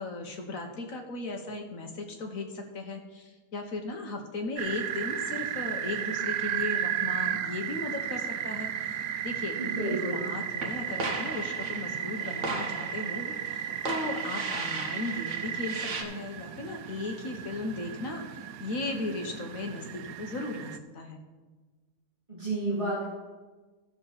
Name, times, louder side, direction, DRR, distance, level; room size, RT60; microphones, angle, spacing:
voice 1, 0.0-18.2 18.6-21.2, left 2 dB, 60° left, 3 dB, 1.4 m, -36 dB
sound 1, 4.6-20.8, right 10 dB, 75° right, 1.0 m, -34 dB
voice 2, 9.6-10.3 22.3-23.0, right 2 dB, 20° right, -8 dB, 2.2 m, -31 dB
sound 2, 10.6-16.0, right 3 dB, 55° right, 1.3 m, -37 dB
14.5 x 6.9 x 4.0 m, 1.3 s
omnidirectional pair, 1.7 m